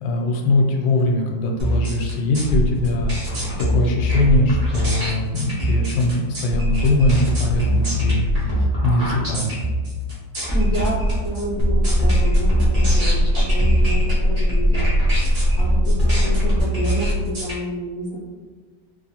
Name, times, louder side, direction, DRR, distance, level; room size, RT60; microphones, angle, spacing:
voice 1, 0.0-8.3 8.6-9.6, left 2 dB, 85° left, 1 dB, 1.3 m, -21 dB
sound 1, 1.6-17.5, equal, 65° right, 0.3 m, -23 dB
voice 2, 10.5-14.8 15.6-18.2, right 1 dB, 65° left, -6 dB, 0.9 m, -29 dB
sound 2, 11.6-16.6, equal, 90° right, 1.5 m, -19 dB
3.0 x 2.9 x 2.8 m, 1.4 s
omnidirectional pair, 2.0 m